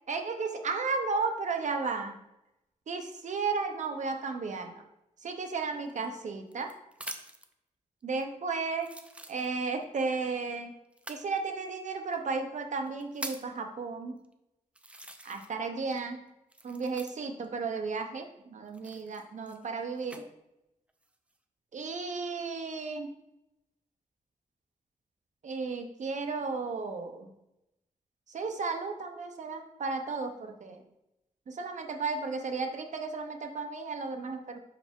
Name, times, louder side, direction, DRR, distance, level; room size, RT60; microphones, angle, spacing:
voice 1, 0.1-2.2 2.9-4.7 5.2-6.7 8.0-8.9 9.3-10.7 11.1-14.2 15.2-16.2 16.6-20.2 21.7-23.1 25.4-27.3 28.3-30.8 31.5-34.6, right 4 dB, 65° right, 5 dB, 0.7 m, -34 dB
sound 1, 5.9-7.5 8.2-8.3 8.8-9.8 10.9-11.3 12.1-12.2 12.8-13.6 14.2-14.3 14.8-15.7 15.9-17.5 18.7-20.2 20.9-21.4, right 1 dB, 10° right, 0.4 m, -45 dB
5.7 x 4.8 x 3.6 m, 0.87 s
wide cardioid pair, 175°, 13 cm